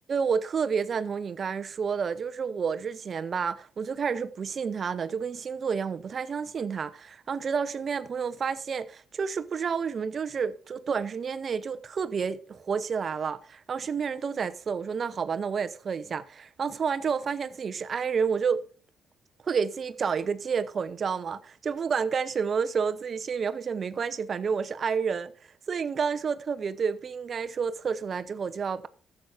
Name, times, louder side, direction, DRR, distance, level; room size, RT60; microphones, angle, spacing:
voice 1, 0.1-18.6 19.4-25.3 25.7-28.9, right 6 dB, 45° right, 0.9 m, -30 dB
12.5 x 8.1 x 5.0 m
cardioid pair, 90°, 0 cm